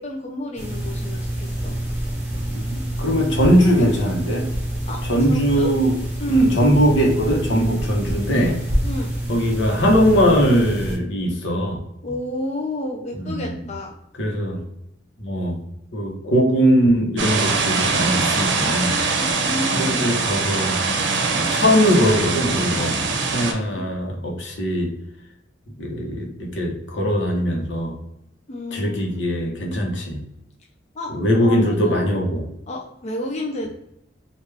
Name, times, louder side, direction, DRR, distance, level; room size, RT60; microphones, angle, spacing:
voice 1, 0.0-1.8 4.9-5.0 5.3-5.7 6.2-6.5 8.8-9.1 12.0-13.9 19.2-19.9 23.7-23.9 28.5-29.1 30.9-32.0 32.7-33.7, left 1 dB, 35° left, 0 dB, 0.4 m, -31 dB
sound 1, 0.6-11.0, right 1 dB, 10° right, 1.1 m, -27 dB
voice 2, 2.5-4.5 5.1-5.9 6.3-8.6 9.3-11.8 13.2-13.5 14.2-14.6 15.2-15.6 15.9-19.0 19.7-20.8 21.3-24.9 25.8-28.0 28.7-30.2 31.1-32.5, equal, 75° left, 0 dB, 0.9 m, -20 dB
sound 2, 17.2-23.5, right 4 dB, 70° right, 0.6 m, -22 dB
3.4 x 2.3 x 3.2 m, 0.81 s
head